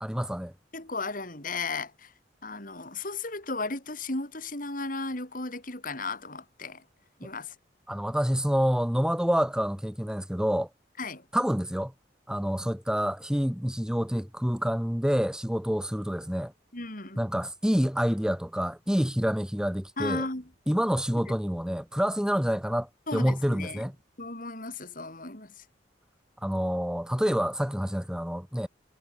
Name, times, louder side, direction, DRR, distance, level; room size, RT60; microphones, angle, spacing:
voice 1, 0.0-0.5 7.2-7.3 7.9-10.7 11.3-11.9 12.3-16.5 17.2-20.3 20.7-23.9 26.4-28.7, equal, 5° right, 1.5 m, -27 dB
voice 2, 0.7-2.1 2.4-6.8 7.2-7.5 11.0-11.2 16.7-17.2 20.0-20.5 21.3-21.4 23.1-23.8 24.2-25.6, left 3 dB, 50° left, 5.2 m, -35 dB
head